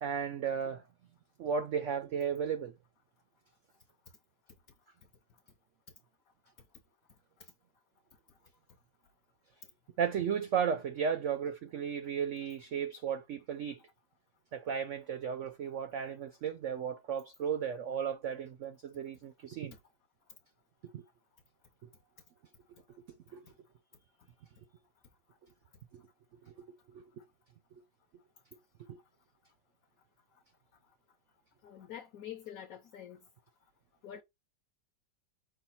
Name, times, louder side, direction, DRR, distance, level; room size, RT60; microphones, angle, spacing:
voice 1, 0.0-0.8 1.4-2.7 10.0-13.8 14.5-19.7 20.9-21.0 23.3-23.4 25.9-26.1 26.4-26.6 26.9-27.1 28.9-29.0, right 7 dB, 85° right, 0.6 m, -34 dB
voice 2, 31.6-33.2 34.0-34.2, left 10 dB, 65° left, 1.0 m, -46 dB
5.6 x 2.4 x 4.0 m
omnidirectional pair, 1.9 m